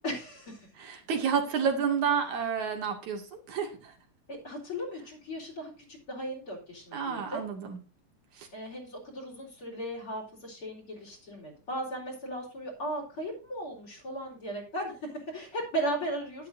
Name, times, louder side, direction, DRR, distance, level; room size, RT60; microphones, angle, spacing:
voice 1, 0.0-0.7 4.3-7.4 8.5-16.5, right 1 dB, 45° left, 1 dB, 4.8 m, -36 dB
voice 2, 0.8-3.9 6.9-7.8 8.4-8.5, right 7 dB, 80° right, 3 dB, 3.7 m, -30 dB
11.5 x 11.5 x 2.7 m, 0.35 s
omnidirectional pair, 3.3 m